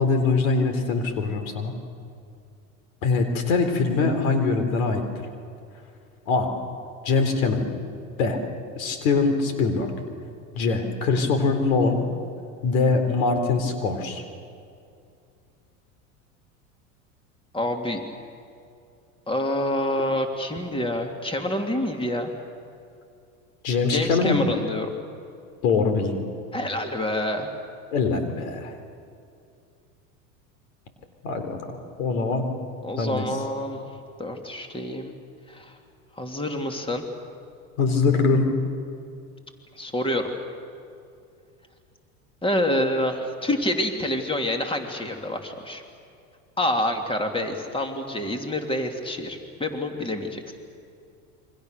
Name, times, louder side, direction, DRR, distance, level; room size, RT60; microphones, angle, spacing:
voice 1, 0.0-1.7 3.0-5.0 6.3-6.5 7.0-7.6 8.2-8.4 8.7-9.9 10.5-12.0 12.6-14.2 23.6-24.4 25.6-26.2 27.9-28.7 31.2-32.5 33.0-33.3 37.8-38.5, left 4 dB, 75° left, 7 dB, 3.9 m, -23 dB
voice 2, 17.5-18.0 19.3-22.3 23.9-24.9 26.5-27.5 32.8-33.9 34.2-35.1 35.5-35.7 36.2-37.0 39.7-40.3 42.4-45.8 46.6-50.5, left 1 dB, 10° left, 4 dB, 3.0 m, -27 dB
28.5 x 24.5 x 6.8 m, 2.5 s
hypercardioid pair, 85°, 43 cm